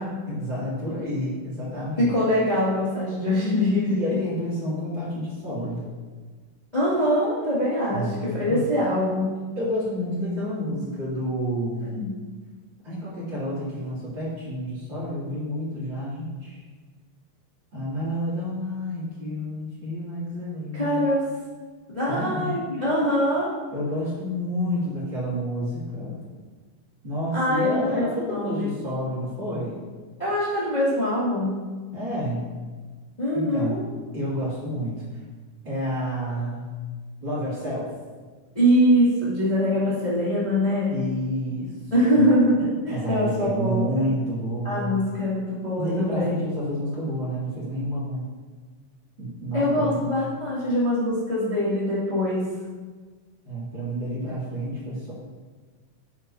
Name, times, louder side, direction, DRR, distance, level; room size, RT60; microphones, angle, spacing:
voice 1, 0.3-2.1 3.9-5.8 7.9-8.2 8.5-8.7 9.5-11.8 12.8-16.6 17.7-21.0 22.1-22.5 23.7-26.2 27.0-29.8 31.9-32.5 33.3-33.8 34.1-35.0 35.6-36.7 37.2-37.9 40.9-41.8 42.1-42.3 42.9-44.9 45.8-48.2 49.2-50.0 53.4-55.1, equal, 35° right, -9 dB, 3.3 m, -29 dB
voice 2, 2.0-4.0 6.7-9.4 11.8-12.1 20.7-21.2 21.9-23.5 27.3-28.7 30.2-31.7 33.2-33.8 38.5-40.9 41.9-43.9 44.6-46.3 49.5-52.5, equal, 15° left, -10 dB, 2.1 m, -23 dB
11.0 x 9.5 x 2.8 m, 1.4 s
omnidirectional pair, 3.7 m